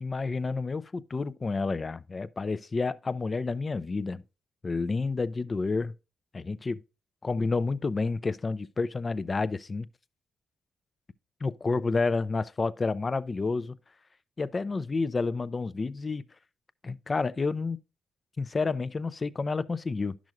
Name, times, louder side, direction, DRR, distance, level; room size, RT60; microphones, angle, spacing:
voice 1, 0.0-4.2 4.6-5.9 6.3-6.8 7.2-9.9 11.4-13.8 14.4-16.2 16.8-17.8 18.4-20.2, left 4 dB, 35° left, 0.5 m, -30 dB
10.5 x 6.1 x 2.5 m
supercardioid pair, 60°, 0 cm